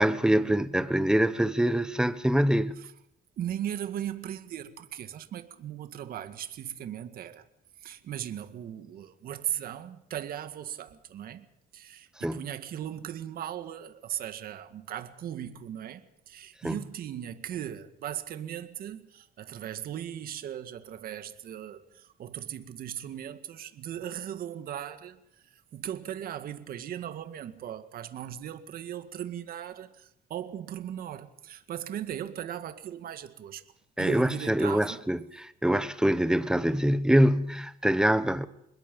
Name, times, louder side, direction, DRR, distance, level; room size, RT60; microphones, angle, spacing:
voice 1, 0.0-2.7 12.2-12.4 16.6-16.7 34.0-38.5, right 1 dB, 5° right, 1.3 m, -24 dB
voice 2, 3.4-7.5 7.8-11.5 11.7-33.6 34.0-35.0, right 10 dB, 60° right, 1.9 m, -38 dB
26.5 x 21.5 x 5.5 m
cardioid pair, 110°, 17 cm